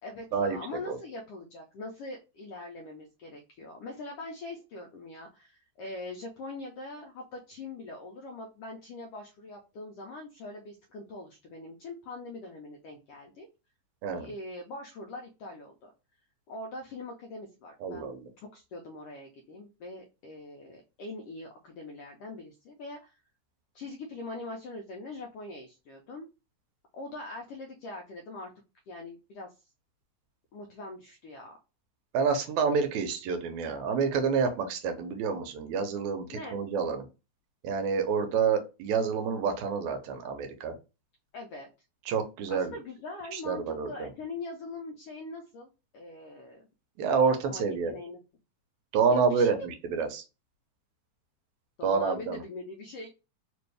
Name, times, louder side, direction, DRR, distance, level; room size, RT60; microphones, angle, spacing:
voice 1, 0.0-13.5 14.1-15.9 16.5-23.1 23.7-26.3 26.9-28.5 28.9-29.5 30.5-31.5 36.3-36.6 41.3-41.7 42.5-45.7 45.9-46.7 47.2-48.2 49.1-49.7 51.8-53.1, left 2 dB, 90° left, 1 dB, 1.3 m, -42 dB
voice 2, 17.8-18.3 32.1-37.0 37.6-40.8 42.1-42.7 43.3-44.1 47.0-47.9 48.9-50.2 51.8-52.4, right 5 dB, 80° right, 7 dB, 2.0 m, -28 dB
4.5 x 2.6 x 3.3 m, 0.29 s
omnidirectional pair, 3.5 m